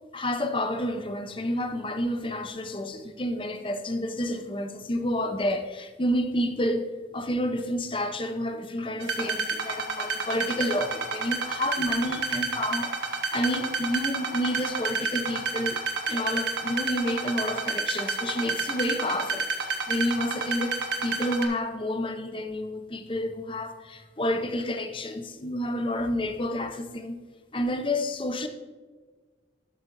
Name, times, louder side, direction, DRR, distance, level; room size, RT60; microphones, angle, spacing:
voice 1, 0.1-27.2 27.5-28.5, left 1 dB, 30° left, 0.7 m, -30 dB
sound 1, 9.0-21.4, right 4 dB, 80° right, 1.4 m, -29 dB
12.5 x 8.6 x 2.6 m
head